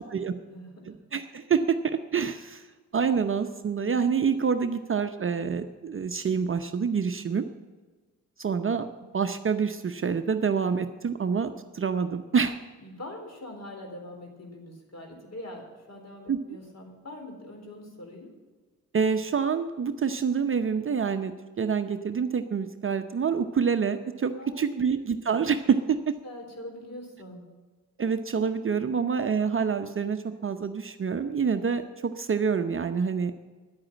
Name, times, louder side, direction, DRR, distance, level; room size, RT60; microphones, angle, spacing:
voice 1, 0.1-1.0 12.8-18.3 24.4-24.8 25.9-26.0 26.2-27.4, left 1 dB, 40° left, 3 dB, 4.0 m, -43 dB
voice 2, 0.9-2.6 2.9-7.5 8.4-8.9 9.1-12.6 16.3-16.4 18.9-26.1 28.0-33.4, right 6 dB, 30° right, 8 dB, 0.8 m, -27 dB
10.5 x 8.8 x 8.7 m, 1.4 s
hypercardioid pair, 45°, 40 cm